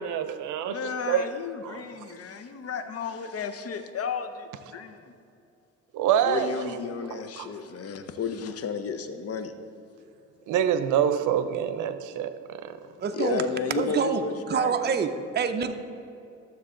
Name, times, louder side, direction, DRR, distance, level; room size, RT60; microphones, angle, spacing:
voice 1, 0.0-1.3 1.6-1.8 5.9-6.8 7.4-7.5 10.5-12.8, right 9 dB, 80° right, 11 dB, 0.6 m, -26 dB
voice 2, 0.6-5.1 6.2-9.5 13.1-15.2, left 6 dB, 50° left, 9 dB, 0.8 m, -33 dB
voice 3, 13.0-13.4 13.8-15.7, right 6 dB, 35° right, 7 dB, 0.6 m, -27 dB
12.5 x 7.1 x 3.8 m, 2.6 s
cardioid pair, 90°, 30 cm